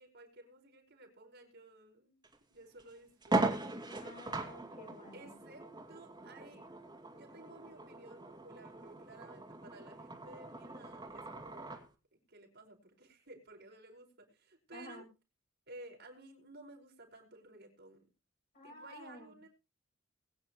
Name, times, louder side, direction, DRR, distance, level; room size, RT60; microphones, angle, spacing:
voice 1, 0.0-2.2 2.5-4.0 5.1-6.7 7.1-11.8 12.1-15.1 15.7-18.0 18.6-19.5, right 2 dB, 55° right, 1 dB, 5.1 m, -55 dB
sound 1, 2.2-2.4 2.8-2.9 3.2-11.9, right 2 dB, 20° right, 2.4 m, -39 dB
voice 2, 3.8-5.3 14.7-15.0 18.5-19.3, left 1 dB, 40° left, 0 dB, 8.0 m, -51 dB
22.0 x 9.6 x 3.0 m, 0.30 s
head